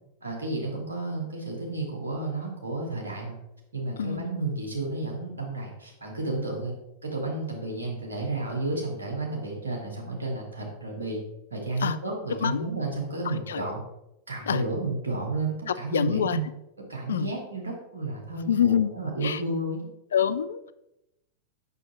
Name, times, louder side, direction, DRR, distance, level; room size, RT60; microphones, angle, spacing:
voice 1, 0.2-3.4 3.7-6.7 7.0-11.2 11.5-13.8 14.3-16.4 16.9-19.8, right 2 dB, 75° right, -1 dB, 1.6 m, -32 dB
voice 2, 13.3-13.6 14.5-14.6 15.9-16.4 17.1-17.3 18.5-18.9 19.2-19.4 20.1-20.7, left 8 dB, 65° left, 14 dB, 0.3 m, -25 dB
6.8 x 6.0 x 3.0 m, 0.87 s
figure-of-eight pair, 90°, 0 cm